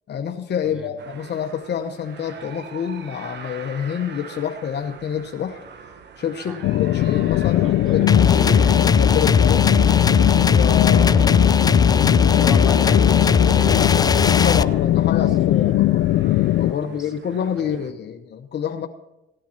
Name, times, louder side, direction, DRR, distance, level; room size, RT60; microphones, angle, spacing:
voice 1, 0.1-5.6 6.2-8.4 8.9-9.7 10.5-11.3 14.4-16.0 16.6-18.9, left 8 dB, 60° left, 5 dB, 1.0 m, -27 dB
sound 1, 1.0-17.9, right 6 dB, 60° right, 1.3 m, -43 dB
sound 2, 6.6-16.7, left 15 dB, 85° left, 0.4 m, -19 dB
voice 2, 7.5-8.8 10.9-11.8 12.3-15.9 16.7-17.9, left 1 dB, ahead, 0 dB, 3.4 m, -36 dB
sound 3, 8.1-14.6, left 5 dB, 20° left, 0.4 m, -18 dB
17.0 x 10.0 x 4.4 m, 0.94 s
cardioid pair, 90°, 20 cm